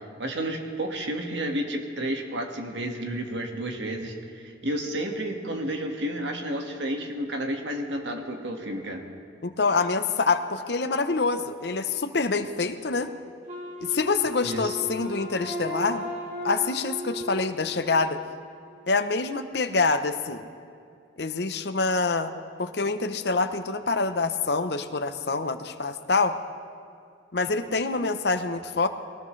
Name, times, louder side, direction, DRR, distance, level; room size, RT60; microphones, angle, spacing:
voice 1, 0.2-4.2 4.4-9.0 14.4-14.8, right 1 dB, 70° right, 3 dB, 1.7 m, -31 dB
voice 2, 9.4-13.1 13.8-16.0 16.4-18.2 18.9-20.4 21.2-22.3 22.6-26.4 27.3-28.9, left 4 dB, 60° left, 9 dB, 0.8 m, -26 dB
Wind instrument woodwind instrument, 13.5-18.5, left 1 dB, 40° right, 2.6 m, -36 dB
22.0 x 19.0 x 3.2 m, 2.4 s
head